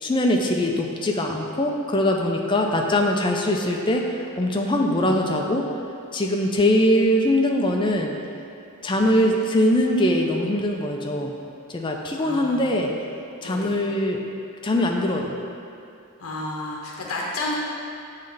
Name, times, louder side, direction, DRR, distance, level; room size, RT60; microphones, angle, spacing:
voice 1, 0.0-5.6 6.1-8.2 8.8-11.3 11.7-12.9 13.4-14.2 14.6-15.3, left 1 dB, 20° left, 1 dB, 0.4 m, -22 dB
voice 2, 4.9-5.2 8.9-9.3 12.1-12.7 13.4-13.8 16.2-17.6, left 2 dB, 70° left, -3 dB, 0.8 m, -32 dB
8.4 x 3.2 x 3.9 m, 2.7 s
head